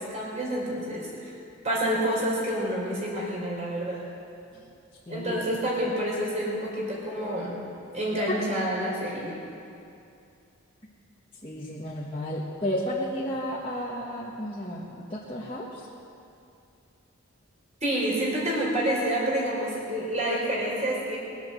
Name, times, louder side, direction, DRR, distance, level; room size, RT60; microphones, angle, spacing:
voice 1, 0.0-1.3 1.6-4.0 5.1-7.6 7.9-9.3 17.8-21.2, right 1 dB, 35° right, -4 dB, 4.1 m, -28 dB
voice 2, 5.1-5.5 8.3-8.4 11.4-15.8, equal, 25° left, -6 dB, 1.3 m, -32 dB
20.5 x 8.0 x 7.6 m, 2.6 s
head